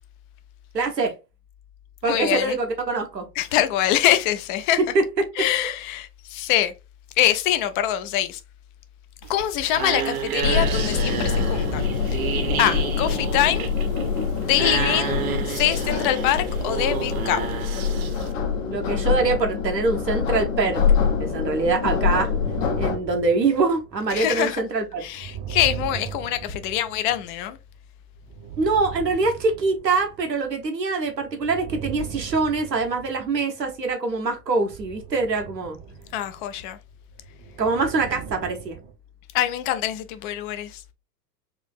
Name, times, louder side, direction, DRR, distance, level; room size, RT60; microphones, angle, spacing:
voice 1, 0.7-1.1 2.0-3.2 4.9-5.0 18.7-20.8 21.2-22.3 22.8-25.0 28.6-35.8 37.6-38.8, right 3 dB, 85° right, 1.1 m, -24 dB
voice 2, 2.0-2.6 3.4-4.8 5.4-6.7 7.2-8.4 9.3-13.7 14.4-15.2 15.4-17.4 24.1-24.6 25.0-27.6 36.1-36.8 39.3-40.8, left 12 dB, 35° left, 0.4 m, -24 dB
sound 1, 9.2-18.3, right 7 dB, 60° right, 0.9 m, -30 dB
sound 2, 10.4-23.0, left 6 dB, 50° left, 1.0 m, -25 dB
sound 3, 22.1-24.3 25.0-27.7 28.1-30.6 30.9-33.8 34.4-38.9, right 9 dB, 35° right, 0.7 m, -38 dB
4.8 x 2.5 x 2.4 m
figure-of-eight pair, 90°, 49 cm